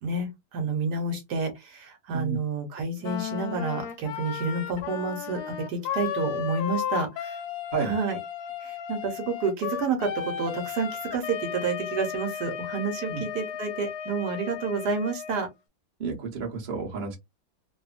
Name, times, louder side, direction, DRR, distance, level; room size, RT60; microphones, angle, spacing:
voice 1, 0.0-7.4 7.8-8.2 8.6-15.5, right 4 dB, 65° right, 1.2 m, -29 dB
Wind instrument woodwind instrument, 3.0-15.5, left 8 dB, 70° left, 1.0 m, -34 dB
voice 2, 16.0-17.2, right 5 dB, 35° right, 0.8 m, -31 dB
2.9 x 2.1 x 2.4 m
omnidirectional pair, 2.0 m